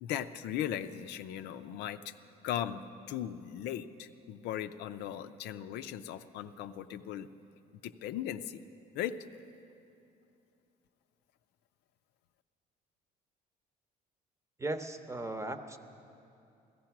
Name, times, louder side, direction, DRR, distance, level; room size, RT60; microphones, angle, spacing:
voice 1, 0.0-2.1 2.4-7.3 7.8-8.6 8.9-9.2, left 10 dB, 85° left, 10 dB, 0.5 m, -38 dB
voice 2, 14.6-15.8, right 2 dB, 15° right, 8 dB, 0.8 m, -37 dB
16.0 x 13.5 x 5.9 m, 2.6 s
cardioid pair, 110°, 17 cm